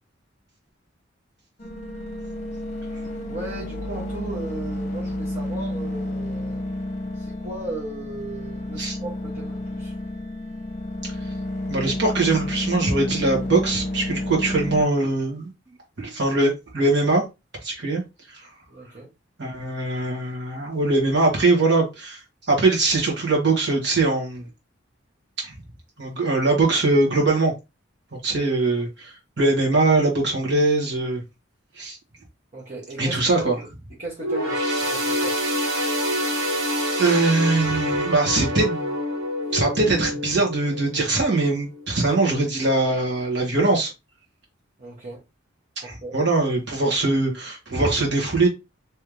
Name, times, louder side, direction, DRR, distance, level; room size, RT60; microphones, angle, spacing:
sound 1, 1.6-14.8, left 1 dB, 35° left, 0.9 m, -31 dB
voice 1, 3.3-6.6 7.2-9.9 18.7-19.1 28.4-28.5 32.5-33.7 34.0-35.4 44.8-45.2 45.8-46.2, right 2 dB, 35° right, 1.3 m, -36 dB
voice 2, 11.7-15.5 16.0-17.3 17.6-18.0 18.3-18.4 19.4-22.2 22.5-24.5 25.4-25.5 26.0-27.5 28.1-31.2 31.8-32.0 33.0-33.5 37.0-39.0 39.5-43.9 45.8-48.5, right 2 dB, 60° right, 1.6 m, -22 dB
sound 2, 34.2-41.9 42.3-42.5 43.4-43.5, equal, 90° right, 2.0 m, -27 dB
3.7 x 3.2 x 3.1 m
head